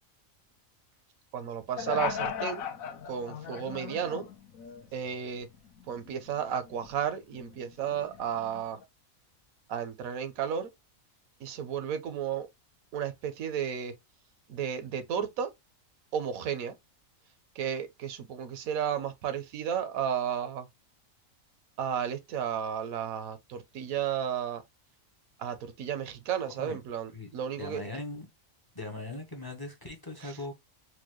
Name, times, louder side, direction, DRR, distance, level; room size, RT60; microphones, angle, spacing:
voice 1, 1.3-2.7 3.1-4.3 4.9-5.5 5.9-8.8 9.7-10.7 11.4-12.5 12.9-13.9 14.5-15.5 16.1-16.8 17.6-20.7 21.8-24.6 25.4-27.8 30.2-30.4, right 8 dB, 85° right, 1.2 m, -33 dB
sound 1, 1.8-5.1 5.5-7.0 7.3-8.8, left 7 dB, 80° left, 1.1 m, -38 dB
voice 2, 26.5-26.8 27.1-28.3 28.7-30.5, left 2 dB, 25° left, 0.5 m, -40 dB
4.5 x 2.3 x 2.9 m
omnidirectional pair, 1.4 m